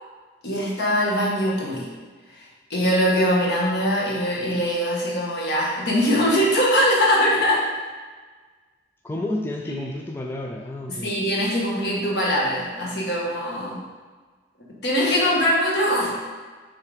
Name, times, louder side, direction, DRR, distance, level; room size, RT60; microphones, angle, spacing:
voice 1, 0.4-1.9 2.3-7.7 9.7-9.8 11.0-13.8 14.8-16.1, equal, 65° left, -4 dB, 1.5 m, -22 dB
voice 2, 9.0-11.2, left 1 dB, 10° left, 0 dB, 0.3 m, -30 dB
5.8 x 3.7 x 5.1 m, 1.4 s
head